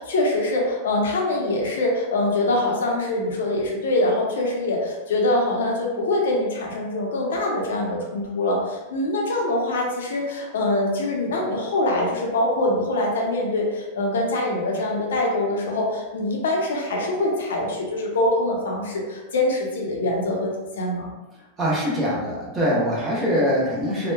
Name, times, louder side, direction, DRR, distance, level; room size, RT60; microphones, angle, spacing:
voice 1, 0.0-21.1, left 1 dB, 90° left, -1 dB, 0.6 m, -24 dB
voice 2, 21.6-24.1, equal, 20° right, -6 dB, 0.7 m, -23 dB
2.8 x 2.1 x 2.2 m, 1.1 s
supercardioid pair, 135°, 0 cm